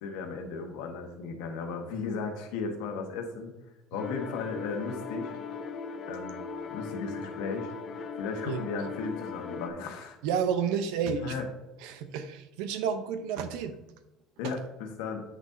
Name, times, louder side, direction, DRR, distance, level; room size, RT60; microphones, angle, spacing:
voice 1, 0.0-3.5 3.9-5.3 6.1-6.4 6.7-7.7 8.1-10.2 11.2-11.4 14.4-15.2, left 4 dB, 90° left, 3 dB, 1.3 m, -35 dB
sound 1, 4.0-9.7, left 5 dB, 40° left, 0.6 m, -38 dB
voice 2, 10.2-11.4 11.8-13.7, right 7 dB, 85° right, 10 dB, 0.8 m, -30 dB
7.9 x 6.1 x 2.7 m, 0.98 s
cardioid pair, 140°, 0 cm